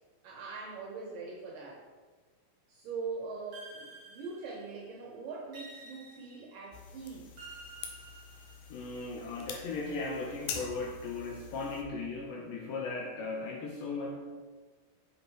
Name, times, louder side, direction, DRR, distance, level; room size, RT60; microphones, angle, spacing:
voice 1, 0.2-1.8 2.7-7.3, right 4 dB, 75° right, -1 dB, 2.1 m, -42 dB
sound 1, 3.5-4.9 5.5-6.7 7.4-8.9, right 3 dB, 50° right, 1.7 m, -51 dB
sound 2, 6.7-11.8, left 7 dB, 90° left, 3.0 m, -45 dB
voice 2, 8.7-14.1, left 3 dB, 75° left, -2 dB, 2.1 m, -37 dB
7.4 x 5.0 x 4.7 m, 1.4 s
omnidirectional pair, 4.8 m